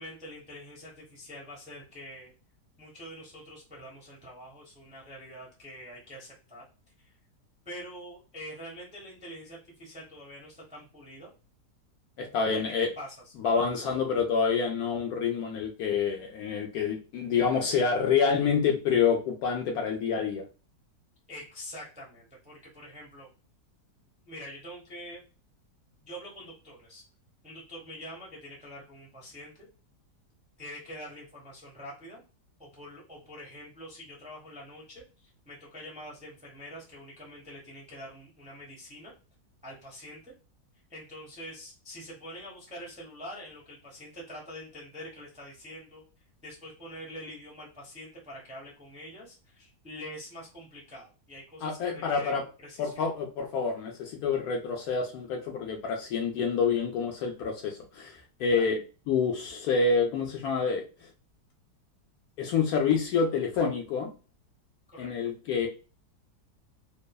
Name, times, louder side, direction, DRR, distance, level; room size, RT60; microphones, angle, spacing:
voice 1, 0.0-2.3 2.8-6.6 7.0-7.2 7.6-11.3 12.5-13.3 21.3-23.3 24.3-25.2 26.0-27.0 27.4-29.7 30.6-32.2 32.6-39.1 39.6-40.3 40.9-46.0 46.4-53.1 58.5-58.7 64.9-65.7, equal, 10° right, -4 dB, 0.5 m, -45 dB
voice 2, 12.2-12.9 13.4-20.4 51.6-52.4 52.8-58.8 59.1-61.1 62.4-64.1 65.0-65.7, left 5 dB, 70° left, 1 dB, 0.9 m, -27 dB
3.0 x 2.0 x 2.3 m, 0.33 s
omnidirectional pair, 1.9 m